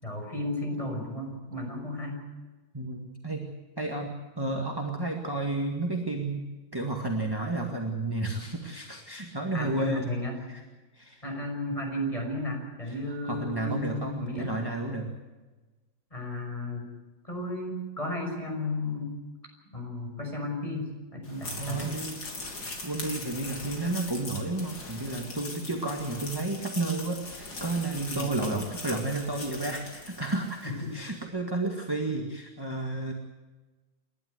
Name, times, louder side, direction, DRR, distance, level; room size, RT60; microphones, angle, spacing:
voice 1, 0.0-2.2 9.5-10.3 11.2-14.5 16.1-16.9 17.2-19.1 19.7-21.9 28.0-28.3 30.6-30.9, left 1 dB, 20° left, 1 dB, 5.9 m, -34 dB
voice 2, 2.7-3.5 3.8-6.4 6.7-10.0 10.5-10.6 10.9-11.2 12.9-13.0 13.2-15.1 21.6-22.2 22.5-33.1, right 2 dB, 15° right, 2 dB, 1.9 m, -32 dB
sound 1, 21.2-30.8, left 3 dB, 85° left, 4.0 m, -40 dB
29.0 x 12.5 x 8.1 m, 1.2 s
omnidirectional pair, 1.9 m